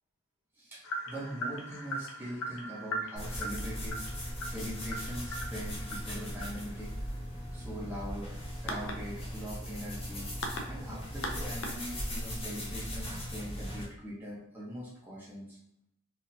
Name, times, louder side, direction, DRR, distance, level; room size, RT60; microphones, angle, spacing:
voice 1, 0.5-4.0 4.4-6.9 7.5-8.3 8.6-10.3 10.7-15.6, equal, 10° right, -9 dB, 0.9 m, -42 dB
sound 1, 0.8-12.3, equal, 65° left, 0.6 m, -41 dB
sound 2, 3.2-13.8, equal, 25° left, 1.1 m, -39 dB
4.2 x 2.8 x 2.7 m, 0.78 s
head